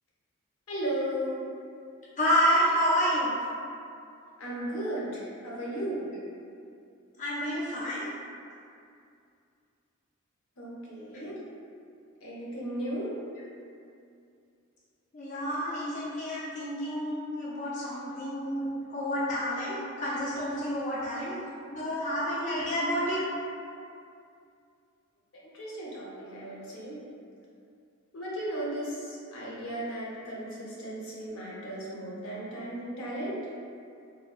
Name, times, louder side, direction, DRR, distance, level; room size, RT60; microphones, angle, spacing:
voice 1, 0.7-1.4 4.4-6.0 10.6-11.4 12.2-13.1 18.1-18.2 25.4-27.0 28.1-33.4, right 1 dB, 75° left, -6 dB, 0.7 m, -35 dB
voice 2, 2.2-3.4 7.2-8.1 15.1-21.4 21.7-23.2, equal, 35° left, -7 dB, 0.3 m, -29 dB
3.3 x 2.1 x 2.3 m, 2.5 s
head